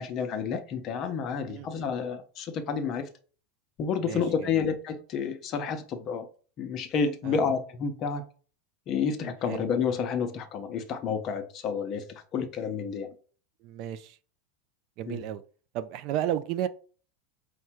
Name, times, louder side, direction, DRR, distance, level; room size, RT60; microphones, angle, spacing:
voice 1, 0.0-3.1 3.8-6.3 6.6-8.2 8.9-13.1 15.1-15.2, left 6 dB, 40° left, 0.7 m, -30 dB
voice 2, 1.5-1.9 4.0-4.6 7.2-7.4 9.5-9.7 13.6-14.2 15.0-15.4 15.7-16.7, right 11 dB, 50° right, 0.4 m, -33 dB
4.8 x 2.2 x 4.4 m
supercardioid pair, 140°, 0 cm